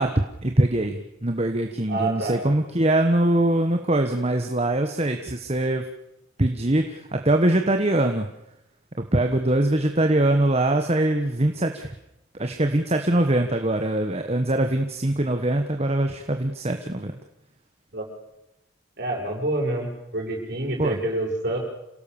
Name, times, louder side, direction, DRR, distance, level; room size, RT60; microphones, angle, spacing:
voice 1, 0.0-5.8 6.4-8.3 9.0-11.9 12.4-17.1 20.8-21.0, right 1 dB, 30° right, 5 dB, 1.3 m, -22 dB
voice 2, 1.9-2.4 17.9-18.1 19.0-21.6, right 2 dB, 50° right, 0 dB, 7.0 m, -27 dB
27.5 x 18.0 x 7.1 m, 0.86 s
head